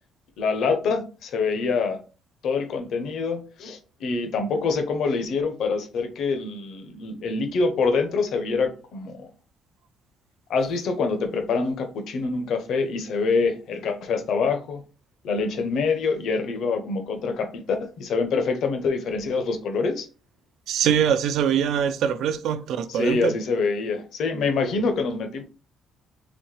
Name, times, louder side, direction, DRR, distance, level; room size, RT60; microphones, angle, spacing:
voice 1, 0.4-2.0 2.4-9.3 10.5-14.8 15.2-20.1 22.9-25.4, left 4 dB, 55° left, 0.7 m, -25 dB
voice 2, 20.7-23.4, right 8 dB, 60° right, 0.4 m, -23 dB
4.1 x 3.5 x 3.2 m
cardioid pair, 175°, 0 cm